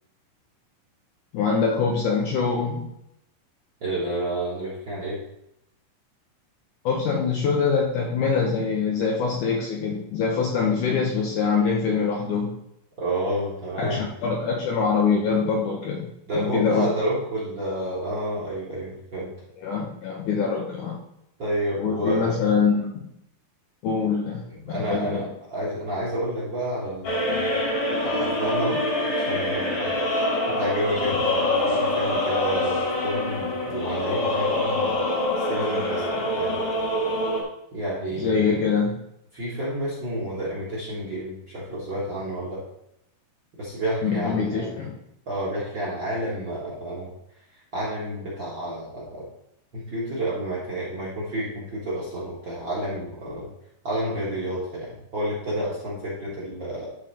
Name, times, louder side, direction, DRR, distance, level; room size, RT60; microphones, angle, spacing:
voice 1, 1.3-2.9 6.9-12.6 13.8-16.1 16.3-16.9 19.6-21.0 21.8-23.1 23.8-25.3 38.2-39.0 44.0-45.0, left 5 dB, 75° left, -1 dB, 1.9 m, -24 dB
voice 2, 3.8-5.2 13.0-14.0 16.3-19.3 21.4-22.3 24.7-25.2 25.5-27.5 28.0-28.8 29.1-30.0 30.5-34.9 35.4-36.6 37.7-38.6 39.3-42.6 43.6-44.8 45.2-47.1 47.7-49.2 49.7-53.5 53.8-56.9, right 1 dB, 45° right, -5 dB, 1.5 m, -30 dB
sound 1, 27.0-37.4, left 1 dB, 45° left, 1.8 m, -25 dB
11.5 x 3.8 x 4.3 m, 0.80 s
omnidirectional pair, 4.6 m